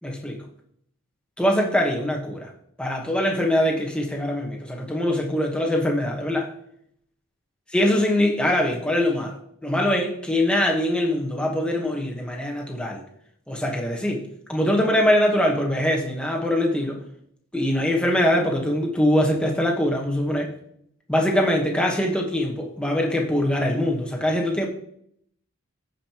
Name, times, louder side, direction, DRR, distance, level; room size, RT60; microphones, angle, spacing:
voice 1, 0.0-0.4 1.4-2.5 2.8-6.5 7.7-9.4 9.6-13.0 13.5-17.0 17.5-20.5 21.1-24.7, left 1 dB, 5° left, 1.2 m, -23 dB
15.0 x 5.3 x 3.0 m
head